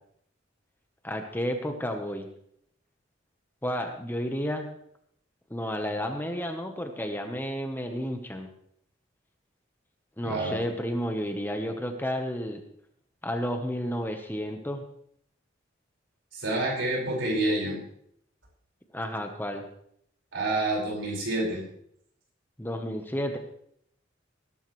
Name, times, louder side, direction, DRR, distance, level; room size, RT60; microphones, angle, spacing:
voice 1, 1.0-2.3 3.6-4.7 5.5-8.5 10.2-12.6 13.2-14.8 18.9-19.6 22.6-23.4, equal, 10° left, 5 dB, 1.1 m, -31 dB
voice 2, 10.2-10.6 16.3-17.8 20.3-21.6, right 2 dB, 70° right, -2 dB, 5.3 m, -28 dB
19.5 x 11.0 x 3.2 m, 0.69 s
head